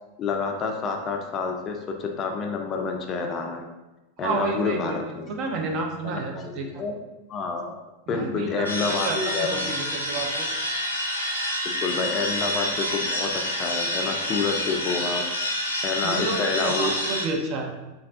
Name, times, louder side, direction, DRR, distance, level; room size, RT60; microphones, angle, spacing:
voice 1, 0.2-3.6 4.2-5.3 6.0-7.0 7.3-7.8 8.1-9.7 11.6-16.9, left 4 dB, 30° left, 2 dB, 0.3 m, -29 dB
voice 2, 4.2-5.0 5.3-6.8 8.1-10.5 16.0-17.7, right 3 dB, 40° right, 2 dB, 0.4 m, -30 dB
sound 1, 8.6-17.3, left 1 dB, 85° left, 0.5 m, -28 dB
3.2 x 2.3 x 2.5 m, 1.0 s
figure-of-eight pair, 90°, 0 cm